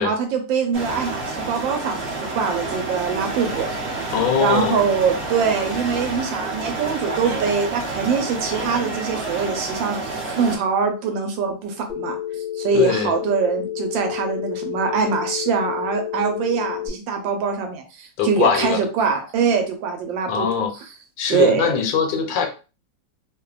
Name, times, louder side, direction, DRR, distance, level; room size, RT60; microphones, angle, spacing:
voice 1, 0.0-3.7 4.4-20.7 21.3-21.7, right 6 dB, 80° right, 4 dB, 1.3 m, -23 dB
sound 1, 0.7-10.6, right 3 dB, 55° right, 0.7 m, -29 dB
voice 2, 4.1-4.8 12.7-13.1 18.2-18.8 20.3-20.7 21.2-22.5, left 7 dB, 80° left, 5 dB, 1.3 m, -21 dB
Telephone, 11.9-16.9, left 11 dB, 60° left, 0.8 m, -30 dB
3.2 x 2.1 x 2.3 m, 0.33 s
omnidirectional pair, 2.1 m